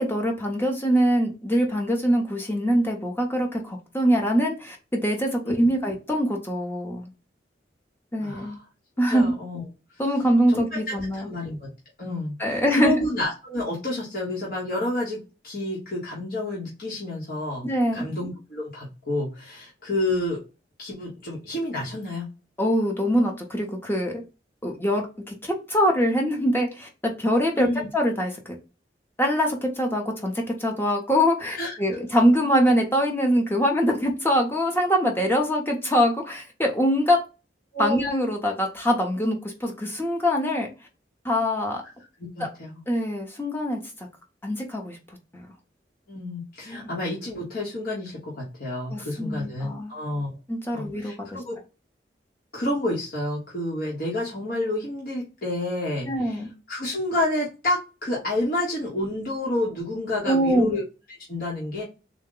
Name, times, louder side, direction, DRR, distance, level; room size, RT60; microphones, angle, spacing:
voice 1, 0.0-7.1 8.1-8.6 9.0-9.3 10.0-11.3 12.4-13.1 17.6-18.1 22.6-24.2 24.6-28.5 29.2-37.2 37.8-40.7 41.2-41.8 42.4-42.5 42.9-44.1 44.4-45.0 45.3-45.5 46.7-46.9 48.9-50.0 50.5-51.1 56.1-56.5 60.3-60.7, equal, 15° left, 2 dB, 0.8 m, -23 dB
voice 2, 8.2-8.6 9.1-9.6 10.5-11.7 12.0-15.2 15.4-20.4 20.8-22.3 27.6-27.9 31.6-31.8 37.7-38.0 42.2-42.8 46.1-50.3 50.7-51.6 52.5-60.8 61.3-61.8, left 1 dB, 55° left, -4 dB, 1.0 m, -29 dB
3.7 x 2.2 x 3.7 m, 0.30 s
head